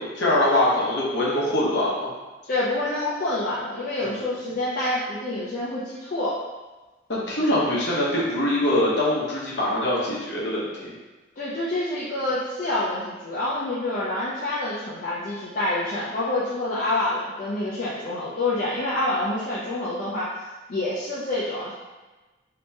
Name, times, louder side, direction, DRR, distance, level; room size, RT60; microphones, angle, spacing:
voice 1, 0.0-2.1 4.0-4.1 7.1-10.9, left 1 dB, 65° left, -5 dB, 1.0 m, -23 dB
voice 2, 2.5-6.4 11.4-20.3 20.7-21.7, left 2 dB, 45° left, -9 dB, 0.6 m, -27 dB
2.9 x 2.9 x 3.3 m, 1.2 s
head